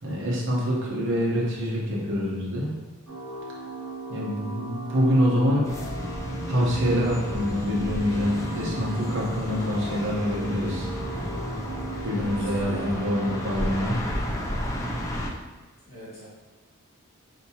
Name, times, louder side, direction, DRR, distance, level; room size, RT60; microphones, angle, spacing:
voice 1, 0.0-2.7 4.1-5.7 6.5-10.9 12.0-14.0, equal, 60° right, -4 dB, 1.0 m, -25 dB
sound 1, 3.1-13.9, right 2 dB, 90° right, 1.2 m, -38 dB
sound 2, 5.6-15.3, equal, 15° left, 0.3 m, -32 dB
voice 2, 12.1-13.0 15.8-16.3, equal, 45° left, -11 dB, 1.4 m, -41 dB
4.6 x 2.8 x 2.8 m, 1.2 s
head